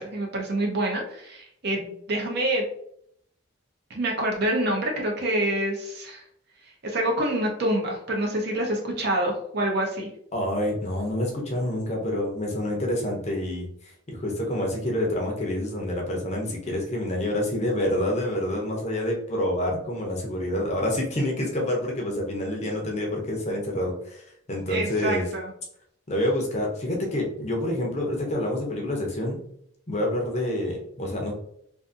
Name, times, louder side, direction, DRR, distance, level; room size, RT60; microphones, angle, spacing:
voice 1, 0.0-2.6 3.9-6.2 6.8-10.1 24.7-25.5, right 1 dB, 50° right, 1 dB, 0.6 m, -27 dB
voice 2, 10.3-13.7 14.1-24.2 24.5-25.3 26.1-29.4 29.9-31.3, left 1 dB, 30° left, 0 dB, 0.5 m, -27 dB
2.5 x 2.5 x 2.5 m, 0.69 s
head